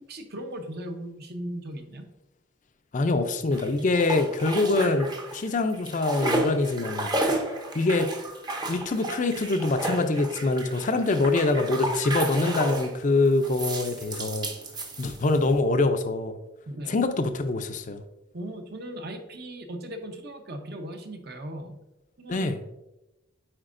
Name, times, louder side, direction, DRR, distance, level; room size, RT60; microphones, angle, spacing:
voice 1, 0.1-2.0 16.7-17.1 18.3-21.8 22.2-22.4, right 1 dB, 55° right, 5 dB, 0.8 m, -38 dB
voice 2, 2.9-7.1 7.7-8.1 8.7-14.5 15.0-16.4 16.9-18.0 22.3-22.6, left 2 dB, 40° left, 8 dB, 0.5 m, -24 dB
sound 1, 3.5-5.5 5.7-12.9 13.4-15.5, right 1 dB, 20° right, 0.7 m, -32 dB
8.8 x 4.3 x 2.5 m, 0.98 s
head